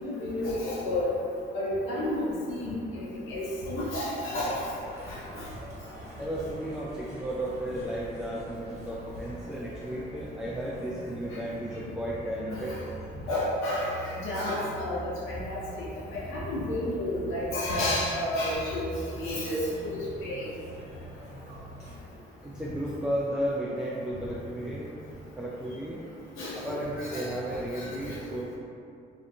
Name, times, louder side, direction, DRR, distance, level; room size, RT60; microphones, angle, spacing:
voice 1, 0.0-1.1 1.5-4.6 5.1-5.5 12.5-12.8 13.3-15.0 15.3-15.8 16.1-20.5 26.4-28.2, left 1 dB, 85° left, -7 dB, 0.7 m, -31 dB
sound 1, 4.4-22.0, right 1 dB, 35° right, 1.4 m, -44 dB
voice 2, 6.2-12.8 22.4-25.0 25.4-26.0 26.5-28.6, right 1 dB, 5° right, -6 dB, 0.3 m, -34 dB
2.5 x 2.5 x 3.5 m, 2.5 s
cardioid pair, 90°, 20 cm